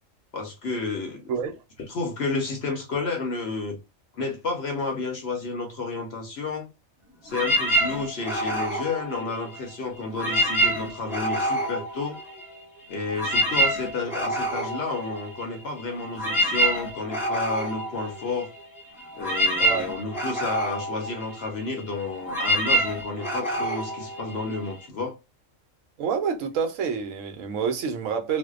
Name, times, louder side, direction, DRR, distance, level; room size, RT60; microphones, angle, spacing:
voice 1, 0.3-1.3 1.9-3.8 4.1-6.7 7.2-12.2 12.9-18.5 19.2-25.2, left 3 dB, 60° left, 0.8 m, -31 dB
sound 1, 7.3-9.7 10.1-12.6 12.9-24.8, right 1 dB, ahead, 0.8 m, -27 dB
voice 2, 19.6-19.9 26.0-28.4, right 6 dB, 75° right, 1.0 m, -27 dB
2.6 x 2.1 x 2.3 m
omnidirectional pair, 1.3 m